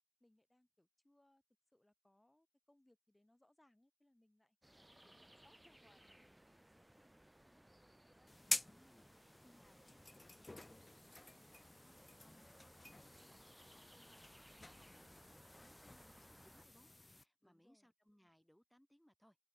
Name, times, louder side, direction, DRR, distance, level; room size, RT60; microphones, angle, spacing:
voice 1, 0.2-1.4 1.7-4.6 5.0-8.6 13.7-14.1 17.4-17.9, left 1 dB, 40° left, 4.0 m, -74 dB
sound 1, 4.6-16.7, right 1 dB, 30° right, 0.8 m, -64 dB
voice 2, 4.7-5.2 8.6-19.4, equal, 10° left, 4.6 m, -71 dB
sound 2, 8.3-17.2, left 2 dB, 75° left, 0.5 m, -49 dB
open air
wide cardioid pair, 40°, 0 cm